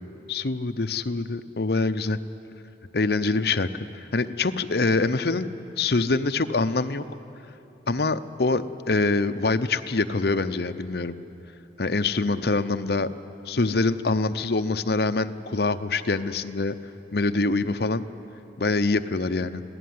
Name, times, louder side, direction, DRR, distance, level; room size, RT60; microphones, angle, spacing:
voice 1, 0.3-2.2 2.9-3.7 3.9-7.0 7.9-11.2 11.8-13.1 13.5-16.7 17.1-18.0 18.6-19.6, left 3 dB, 60° left, 10 dB, 0.8 m, -25 dB
26.0 x 17.0 x 9.5 m, 2.9 s
head